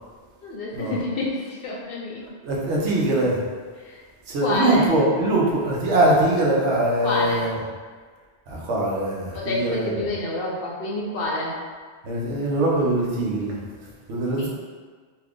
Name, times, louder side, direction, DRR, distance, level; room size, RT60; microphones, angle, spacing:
voice 1, 0.4-2.2 3.8-4.0 4.4-4.9 7.0-7.4 9.3-11.5, left 2 dB, 60° left, -4 dB, 0.7 m, -28 dB
voice 2, 2.4-3.4 4.3-7.6 8.5-10.1 12.0-14.5, right 1 dB, 80° right, -4 dB, 1.0 m, -22 dB
2.7 x 2.4 x 3.4 m, 1.5 s
omnidirectional pair, 1.2 m